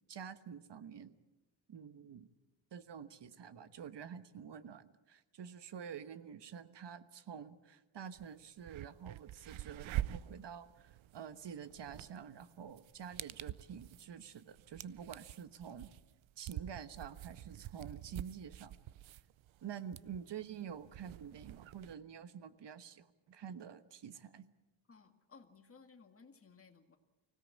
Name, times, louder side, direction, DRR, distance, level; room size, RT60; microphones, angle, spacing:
voice 1, 0.1-1.2 1.7-2.3 2.7-15.9 16.4-18.8 19.6-24.5, right 8 dB, 65° right, 12 dB, 1.3 m, -48 dB
sound 1, 8.1-8.2 8.6-21.9, right 13 dB, 85° right, 0.7 m, -46 dB
voice 2, 24.9-27.0, left 5 dB, 30° left, 5 dB, 2.1 m, -60 dB
24.5 x 17.0 x 8.6 m, 1.1 s
wide cardioid pair, 120°, 46 cm